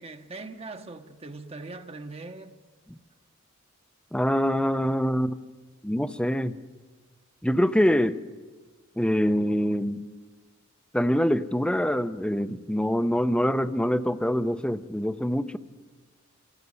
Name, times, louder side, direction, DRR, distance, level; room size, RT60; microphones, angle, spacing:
voice 1, 0.0-2.6, right 3 dB, 30° right, 1.0 m, -41 dB
voice 2, 4.1-5.4 5.8-6.5 7.4-8.2 9.0-10.0 10.9-15.6, equal, 5° left, 0.7 m, -24 dB
27.5 x 17.0 x 9.6 m
head